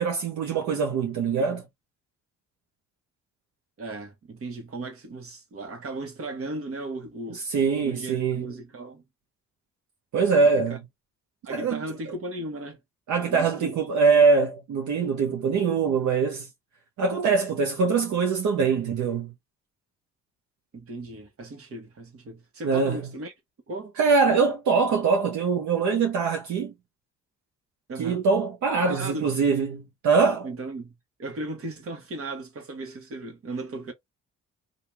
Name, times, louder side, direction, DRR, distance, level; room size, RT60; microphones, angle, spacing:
voice 1, 0.0-1.6 7.5-8.5 10.1-10.8 11.5-11.8 13.1-16.5 17.0-19.3 22.6-23.0 24.0-26.7 28.0-30.5, right 5 dB, 70° right, 1.0 m, -23 dB
voice 2, 3.8-7.4 7.8-9.0 10.7-10.8 11.4-12.8 13.2-13.8 20.7-23.3 23.7-23.9 27.9-28.2 28.7-29.3 30.4-30.9 31.2-33.9, right 2 dB, 50° right, 1.4 m, -36 dB
2.9 x 2.7 x 3.4 m
cardioid pair, 90°, 30 cm